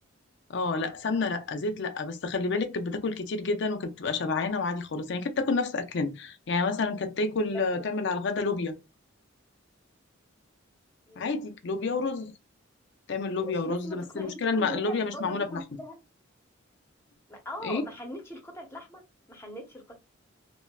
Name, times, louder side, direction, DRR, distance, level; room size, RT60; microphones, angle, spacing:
voice 1, 0.5-8.8 11.2-12.3 13.1-15.6 17.6-17.8, left 3 dB, 60° left, 0.5 m, -29 dB
voice 2, 11.1-11.4 13.4-16.0 17.3-20.0, equal, 15° left, 0.8 m, -41 dB
3.1 x 2.2 x 2.3 m
head